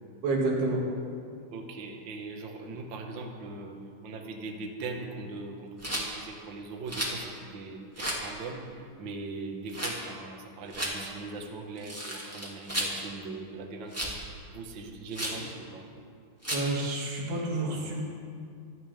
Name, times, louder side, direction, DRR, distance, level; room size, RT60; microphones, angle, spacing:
voice 1, 0.2-0.9 16.5-18.0, right 2 dB, 75° right, -2 dB, 4.3 m, -29 dB
voice 2, 1.5-14.2 14.5-15.9, right 3 dB, 55° right, 2 dB, 1.4 m, -40 dB
Rattle, 5.8-6.1 6.9-7.2 7.9-8.2 9.7-9.9 10.7-10.9 11.8-12.9 13.9-14.2 15.1-15.4 16.4-16.7, equal, 5° right, 1.1 m, -33 dB
24.5 x 14.0 x 3.6 m, 2.3 s
omnidirectional pair, 4.6 m